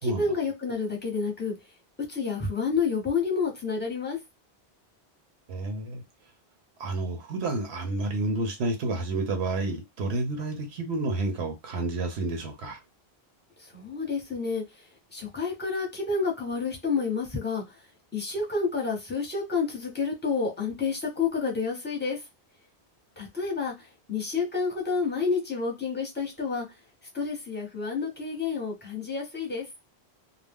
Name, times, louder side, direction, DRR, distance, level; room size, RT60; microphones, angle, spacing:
voice 1, 0.0-1.5 2.1-4.2 13.7-14.6 15.1-17.6 18.1-22.2 23.2-23.7 24.1-26.7 27.1-29.6, left 5 dB, 10° left, 0.8 m, -29 dB
voice 2, 5.5-6.0 6.8-12.8, right 2 dB, 85° right, 0.9 m, -30 dB
2.4 x 2.0 x 3.4 m
omnidirectional pair, 1.1 m